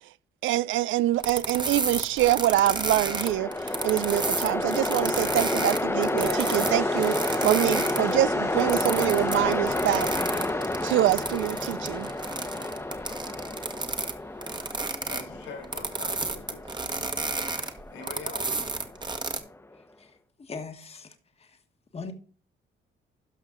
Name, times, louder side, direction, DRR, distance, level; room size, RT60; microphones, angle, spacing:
voice 1, 0.4-10.5 10.8-12.1, right 14 dB, 80° right, 0.4 m, -25 dB
sound 1, 1.2-8.1 8.5-14.1 14.4-19.4, right 3 dB, 20° right, 1.2 m, -32 dB
Train, 2.3-19.5, left 2 dB, 10° left, 0.9 m, -30 dB
sound 2, 6.3-15.3, right 5 dB, 60° right, 1.7 m, -44 dB
voice 2, 15.1-17.1 17.9-18.7, left 3 dB, 85° left, 4.2 m, -43 dB
voice 3, 19.7-21.6 21.9-22.1, left 4 dB, 30° left, 1.3 m, -41 dB
12.0 x 5.7 x 3.7 m
cardioid pair, 90°, 20 cm